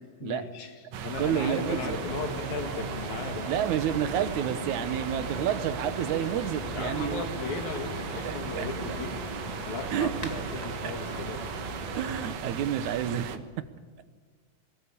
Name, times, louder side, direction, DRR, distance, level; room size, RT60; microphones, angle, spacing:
voice 1, 0.2-3.5 6.7-9.1 9.7-11.4, left 4 dB, 75° left, 5 dB, 3.4 m, -36 dB
sound 1, 0.9-13.4, right 7 dB, 65° right, 2.1 m, -37 dB
sound 2, 1.2-12.3, equal, 15° left, 1.5 m, -39 dB
voice 2, 1.2-2.0 3.5-7.3 8.2-9.0 9.9-10.2 10.6-10.7 12.0-13.6 14.0-14.1, right 10 dB, 80° right, 12 dB, 2.4 m, -30 dB
22.5 x 18.5 x 8.5 m, 1.5 s
omnidirectional pair, 3.4 m